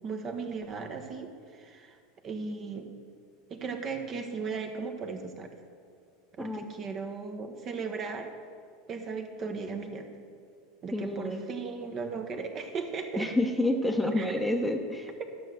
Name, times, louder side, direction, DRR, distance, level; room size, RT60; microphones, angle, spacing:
voice 1, 0.0-2.0 2.2-2.9 3.5-5.6 6.4-8.3 8.9-10.1 10.8-13.3 14.2-14.3, right 4 dB, 35° right, 5 dB, 1.1 m, -36 dB
voice 2, 10.9-11.4 13.2-15.1, left 1 dB, ahead, 3 dB, 0.9 m, -28 dB
12.5 x 6.7 x 6.4 m, 2.3 s
figure-of-eight pair, 80°, 0 cm